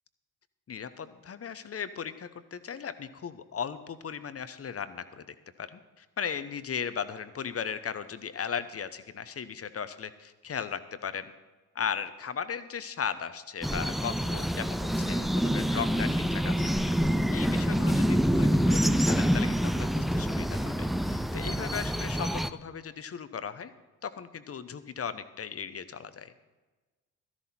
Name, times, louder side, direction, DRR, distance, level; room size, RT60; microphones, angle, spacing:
voice 1, 0.7-11.3 11.7-23.7 24.0-26.3, left 7 dB, 35° left, 13 dB, 0.9 m, -37 dB
sound 1, 13.6-22.5, equal, ahead, 0.3 m, -26 dB
13.0 x 11.5 x 4.4 m, 1.3 s
hypercardioid pair, 55°, 43 cm